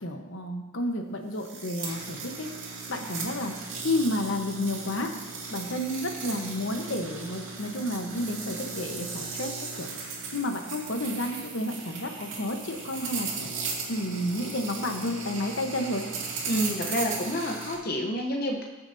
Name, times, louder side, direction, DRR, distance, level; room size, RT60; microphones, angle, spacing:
voice 1, 0.0-2.5 2.9-3.5 3.8-5.1 5.5-9.9 10.3-13.5 13.9-16.1, left 1 dB, 70° left, 4 dB, 1.1 m, -31 dB
sound 1, 1.3-17.7, right 4 dB, 80° right, 2.4 m, -37 dB
voice 2, 16.4-18.7, equal, 50° left, 1 dB, 0.9 m, -29 dB
20.0 x 6.8 x 2.8 m, 1.1 s
head